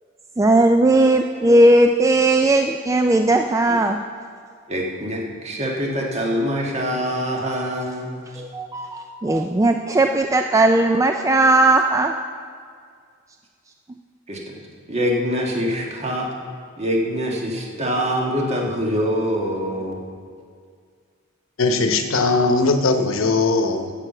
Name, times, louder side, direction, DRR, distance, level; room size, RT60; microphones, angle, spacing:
voice 1, 0.4-4.0 8.4-12.1, right 2 dB, 15° right, 5 dB, 0.3 m, -17 dB
voice 2, 4.7-8.2 14.3-14.5 14.9-16.3 16.8-20.0, equal, 30° right, 0 dB, 1.5 m, -24 dB
voice 3, 21.6-23.9, left 3 dB, 90° left, 6 dB, 0.9 m, -19 dB
9.7 x 7.6 x 7.6 m, 2.1 s
head